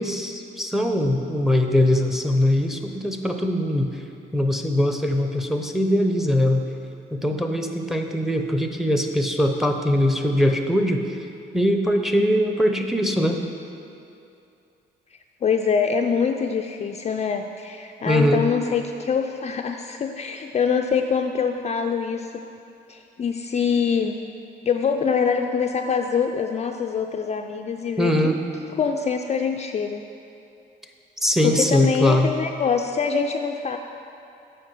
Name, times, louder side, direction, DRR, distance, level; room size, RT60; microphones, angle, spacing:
voice 1, 0.0-4.0 4.3-6.7 7.1-11.0 11.5-13.4 18.1-18.5 28.0-28.4 31.2-32.3, left 1 dB, ahead, 5 dB, 0.7 m, -21 dB
voice 2, 15.4-22.4 22.9-24.2 24.6-28.3 28.8-30.0 31.4-33.8, left 6 dB, 35° left, 4 dB, 0.4 m, -24 dB
7.6 x 5.0 x 6.2 m, 2.6 s
cardioid pair, 90°, 20 cm